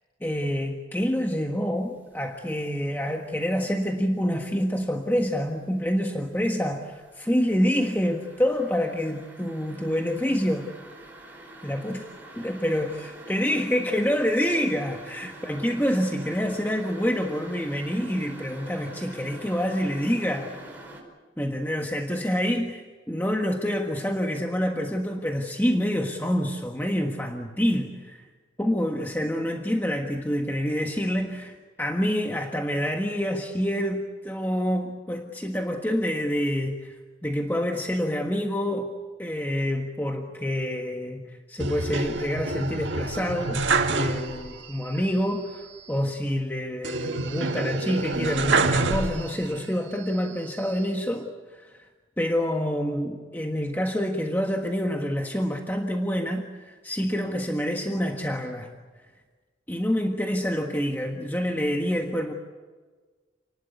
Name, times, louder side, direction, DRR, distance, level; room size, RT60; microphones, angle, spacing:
voice 1, 0.2-6.8 7.1-10.7 11.6-12.0 12.4-13.0 13.3-20.6 21.4-28.2 28.6-37.0 37.2-38.9 39.2-43.6 43.9-51.9 52.2-58.7 59.7-62.3, equal, 10° left, 2 dB, 1.5 m, -27 dB
sound 1, 2.0-2.3 2.7-4.3 4.6-21.0, right 1 dB, 10° right, 5.2 m, -46 dB
sound 2, 41.6-44.6 44.9-45.0 46.8-49.6 50.1-50.9, right 3 dB, 85° right, 1.9 m, -27 dB
29.0 x 19.5 x 8.4 m, 1.4 s
head